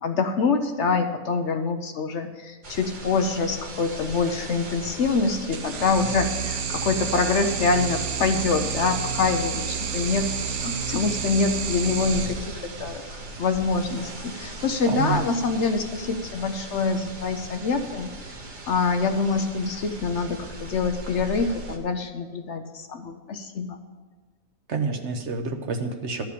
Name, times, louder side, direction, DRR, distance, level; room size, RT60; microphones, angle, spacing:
voice 1, 0.0-18.1 18.7-23.8, left 4 dB, 60° left, 7 dB, 0.9 m, -25 dB
sound 1, 2.6-21.8, right 2 dB, 35° right, 1.1 m, -39 dB
sound 2, 5.5-13.1, right 7 dB, 80° right, 1.2 m, -30 dB
voice 2, 14.9-15.2 24.7-26.2, right 4 dB, 55° right, 4 dB, 1.1 m, -28 dB
13.0 x 4.9 x 8.4 m, 1.3 s
omnidirectional pair, 1.5 m